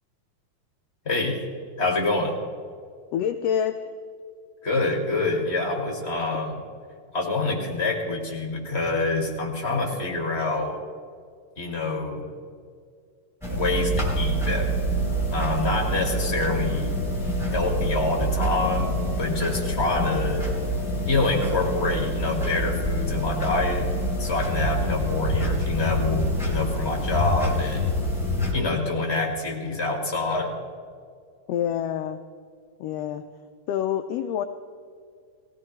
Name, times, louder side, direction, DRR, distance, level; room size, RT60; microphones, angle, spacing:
voice 1, 1.0-1.4 1.8-2.4 4.6-6.6 7.1-10.8 11.6-12.3 13.5-14.7 15.3-17.0 17.5-20.5 21.0-23.9 24.2-27.9 28.5-30.5, left 3 dB, 25° left, 0 dB, 1.6 m, -26 dB
voice 2, 3.1-3.8 31.5-32.2 32.8-33.2 33.7-34.4, left 9 dB, 80° left, 7 dB, 1.4 m, -26 dB
sound 1, 13.4-28.5, equal, ahead, 3.3 m, -26 dB
20.0 x 16.5 x 3.2 m, 2.2 s
omnidirectional pair, 3.4 m